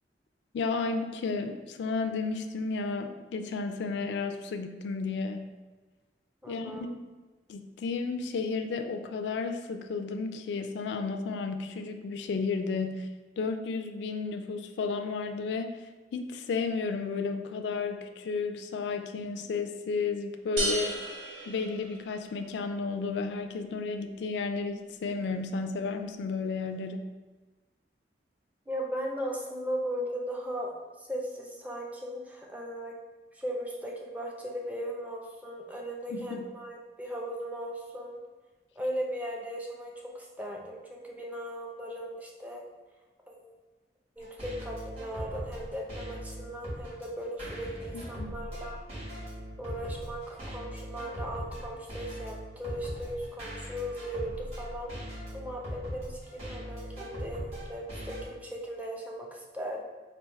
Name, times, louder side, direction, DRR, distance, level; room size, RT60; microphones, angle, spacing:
voice 1, 0.5-5.5 6.5-6.9 7.5-15.7 16.1-21.0 21.5-27.1 36.1-36.4 48.2-48.3, left 4 dB, 75° left, 7 dB, 0.3 m, -33 dB
voice 2, 6.4-6.9 28.7-32.9 33.3-38.2 38.8-42.6 43.3-43.5 44.2-48.8 49.6-59.8, equal, 10° right, -1 dB, 0.5 m, -37 dB
sound 1, 20.6-22.4, right 2 dB, 80° right, 0.8 m, -34 dB
sound 2, 44.2-58.2, equal, 35° right, 1.5 m, -40 dB
3.4 x 2.5 x 4.3 m, 1.3 s
head